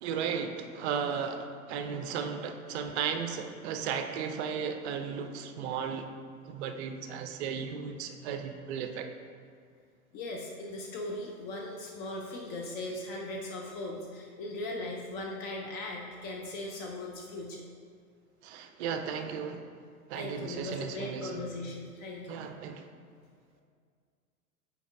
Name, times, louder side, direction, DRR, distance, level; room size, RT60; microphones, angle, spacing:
voice 1, 0.0-6.1 6.5-9.1 18.4-19.6 20.1-21.4 22.3-22.9, right 7 dB, 50° right, 7 dB, 0.6 m, -35 dB
voice 2, 10.1-17.7 20.1-22.4, left 2 dB, 25° left, 0 dB, 0.3 m, -39 dB
6.0 x 4.8 x 3.4 m, 2.1 s
hypercardioid pair, 105°, 43 cm